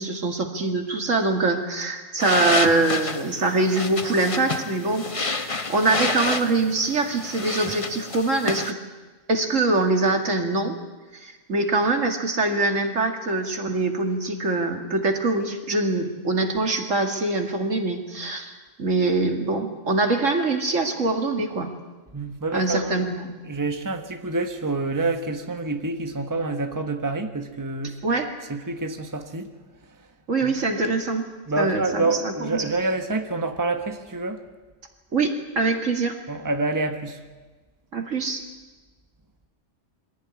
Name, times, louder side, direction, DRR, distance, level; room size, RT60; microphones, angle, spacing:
voice 1, 0.0-8.8 9.3-10.8 11.1-18.5 18.8-21.7 22.5-23.3 28.0-28.3 30.3-31.3 31.6-32.7 35.1-36.2 37.9-38.4, right 3 dB, 75° right, 4 dB, 2.6 m, -24 dB
sound 1, 2.2-8.7, left 3 dB, 30° left, 1.0 m, -29 dB
voice 2, 22.1-23.1 23.5-28.0 28.5-29.5 30.4-30.5 31.5-34.4 36.3-37.2, right 3 dB, 15° right, 5 dB, 1.4 m, -27 dB
23.5 x 17.0 x 9.7 m, 1.3 s
omnidirectional pair, 1.3 m